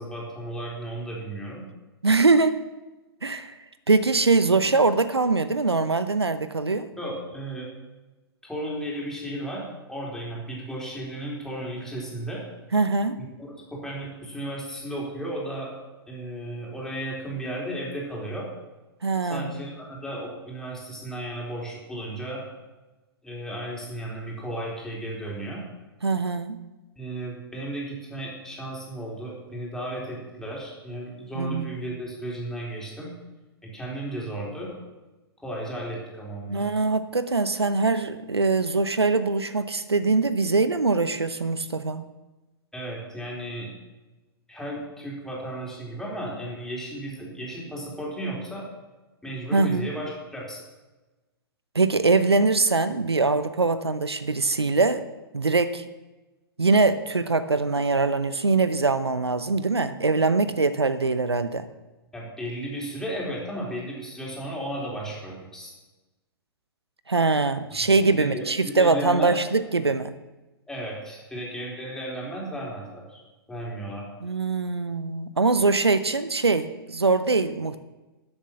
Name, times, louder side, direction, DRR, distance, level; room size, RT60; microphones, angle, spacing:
voice 1, 0.0-1.6 7.0-7.7 8.4-12.4 13.2-15.7 16.1-18.5 19.3-22.4 23.2-25.6 27.0-33.1 33.6-34.8 35.4-36.6 42.7-43.7 44.5-48.7 49.2-50.6 62.1-65.7 67.7-67.8 68.2-69.4 70.7-73.2 73.5-74.1, right 1 dB, 5° left, -4 dB, 4.0 m, -34 dB
voice 2, 2.0-2.6 3.2-3.6 3.9-6.9 12.7-13.2 19.0-19.6 26.0-26.6 31.3-31.7 36.5-42.0 49.5-49.9 51.7-55.0 55.3-55.8 56.6-61.7 67.1-70.1 74.2-77.8, right 3 dB, 85° right, 13 dB, 0.7 m, -23 dB
13.0 x 7.9 x 7.4 m, 1.1 s
figure-of-eight pair, 110°, 13 cm